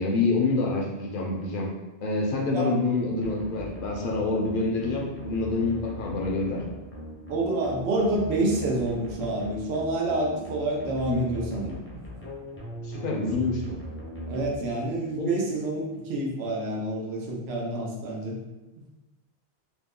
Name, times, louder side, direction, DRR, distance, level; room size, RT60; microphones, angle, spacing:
voice 1, 0.0-1.7 2.0-6.6 11.1-11.3 12.8-13.6 15.2-15.3, left 3 dB, 60° left, -1 dB, 0.7 m, -27 dB
sound 1, 3.2-15.1, equal, 15° left, 0.5 m, -40 dB
voice 2, 7.3-11.8 14.3-18.4 18.8-18.9, right 2 dB, 85° right, -2 dB, 0.9 m, -28 dB
2.9 x 2.1 x 3.6 m, 1.1 s
omnidirectional pair, 1.0 m